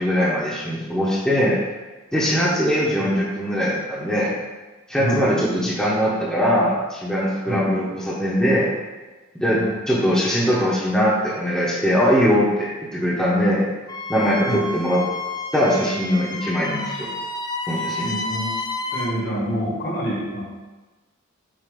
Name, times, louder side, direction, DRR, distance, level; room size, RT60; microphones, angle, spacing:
voice 1, 0.0-1.6 2.1-4.3 4.9-8.7 9.4-13.7 14.1-15.0 15.5-17.1 17.7-18.1, equal, 5° left, -7 dB, 1.0 m, -21 dB
voice 2, 4.9-5.2 7.5-7.7 9.5-9.7 14.4-14.7 18.0-18.5 18.9-20.4, right 1 dB, 55° left, -3 dB, 1.7 m, -27 dB
Wind instrument woodwind instrument, 13.9-19.2, left 2 dB, 20° left, 0.5 m, -30 dB
7.5 x 2.8 x 5.2 m, 1.2 s
head